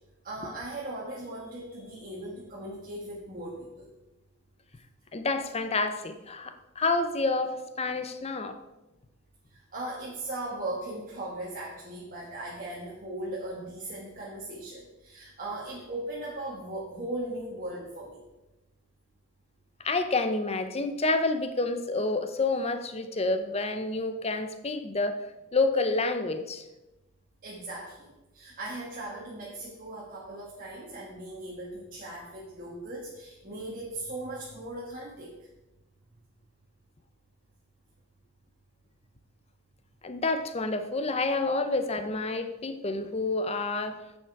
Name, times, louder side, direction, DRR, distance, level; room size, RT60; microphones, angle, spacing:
voice 1, 0.2-3.9 9.5-18.2 27.4-35.3, right 1 dB, 40° right, -4 dB, 1.4 m, -38 dB
voice 2, 5.1-8.6 19.8-25.3 25.5-26.6 40.0-44.0, left 3 dB, 30° left, 9 dB, 0.6 m, -29 dB
9.4 x 7.2 x 4.7 m, 1.0 s
head